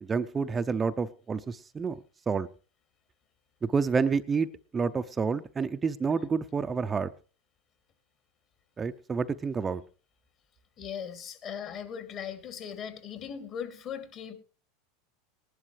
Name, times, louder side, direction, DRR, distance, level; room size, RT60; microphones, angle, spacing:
voice 1, 0.0-2.0 2.3-2.5 3.6-7.1 8.8-9.8, right 5 dB, 25° right, 0.5 m, -29 dB
voice 2, 10.8-14.3, left 8 dB, 45° left, 2.6 m, -39 dB
19.0 x 11.5 x 3.2 m
hypercardioid pair, 90°, 0 cm